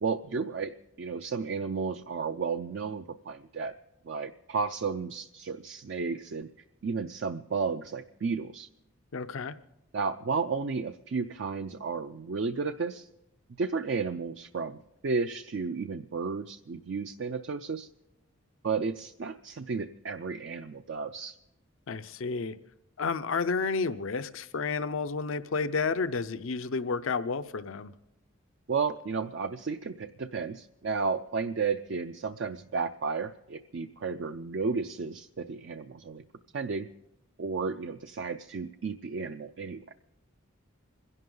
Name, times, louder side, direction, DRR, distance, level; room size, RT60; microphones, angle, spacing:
voice 1, 0.0-3.7 4.1-6.5 6.8-8.7 9.9-13.1 13.6-17.9 18.6-21.4 28.7-36.2 36.5-36.9 37.4-39.9, right 5 dB, 55° right, 0.4 m, -33 dB
voice 2, 9.1-9.5 21.9-22.6 23.0-27.9, left 4 dB, 70° left, 0.5 m, -31 dB
26.0 x 11.0 x 3.8 m
head